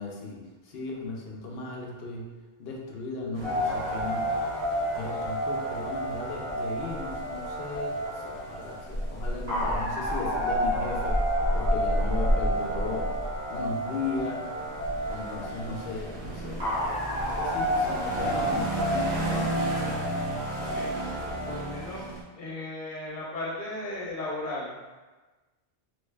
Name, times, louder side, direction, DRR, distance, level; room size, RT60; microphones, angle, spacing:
voice 1, 0.0-2.3 2.6-4.3 4.9-11.2 11.5-13.1 13.5-14.5 15.1-16.8 17.1-19.6, left 3 dB, 65° left, -1 dB, 0.8 m, -36 dB
sound 1, 3.3-22.2, right 1 dB, 45° right, 0.4 m, -33 dB
sound 2, 3.4-21.5, equal, 70° right, 1.4 m, -31 dB
voice 2, 20.6-21.0 21.5-22.1 22.3-25.0, left 2 dB, 45° left, -6 dB, 1.0 m, -36 dB
3.1 x 2.1 x 3.2 m, 1.2 s
omnidirectional pair, 1.2 m